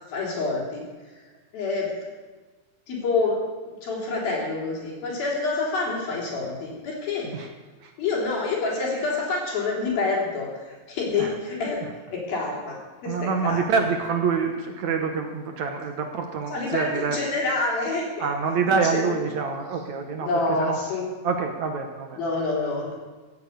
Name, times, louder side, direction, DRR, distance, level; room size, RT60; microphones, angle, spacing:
voice 1, 0.1-0.9 1.5-1.9 2.9-3.4 3.8-7.3 8.0-11.8 12.1-13.1 13.4-13.6 16.5-18.3 18.9-19.1 20.2-21.0 22.2-22.9, left 3 dB, 80° left, -3 dB, 5.6 m, -27 dB
voice 2, 13.0-17.2 18.2-20.8 21.2-22.2, right 5 dB, 65° right, 4 dB, 2.1 m, -26 dB
16.0 x 8.6 x 8.2 m, 1.3 s
omnidirectional pair, 4.1 m